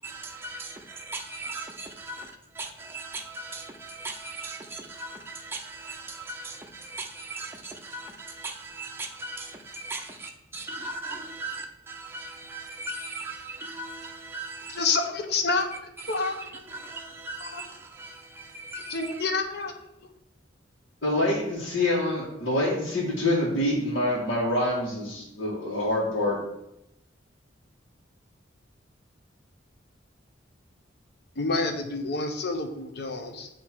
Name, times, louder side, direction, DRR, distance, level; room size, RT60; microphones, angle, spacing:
voice 1, 0.0-15.0 15.7-19.3, right 2 dB, 10° right, 0.5 m, -39 dB
voice 2, 14.7-15.7 16.1-16.6 17.4-17.6 18.9-19.7 31.4-33.5, left 3 dB, 60° left, 0.8 m, -28 dB
voice 3, 21.0-26.4, left 1 dB, 85° left, 1.5 m, -26 dB
7.7 x 2.9 x 4.5 m
head